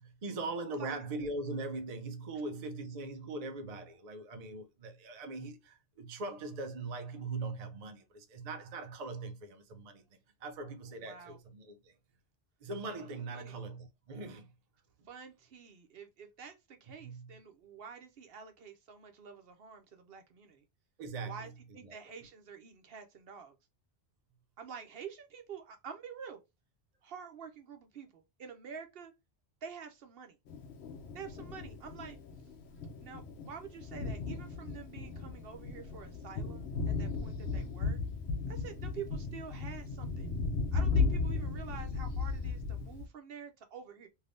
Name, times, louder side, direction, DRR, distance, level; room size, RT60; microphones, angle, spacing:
voice 1, 0.0-10.0 10.4-11.9 12.6-14.5 17.0-17.4 21.0-21.5 21.8-22.0, right 3 dB, 50° right, 0.6 m, -41 dB
voice 2, 10.9-11.4 13.3-13.6 15.1-20.6 21.2-23.5 24.6-26.4 27.0-29.1 29.6-30.4 31.1-32.2 33.0-38.0 38.5-40.3 40.7-44.1, right 6 dB, 70° right, 0.9 m, -48 dB
Thunder, 30.5-43.1, left 4 dB, 80° left, 0.9 m, -36 dB
3.4 x 2.7 x 2.5 m
omnidirectional pair, 1.1 m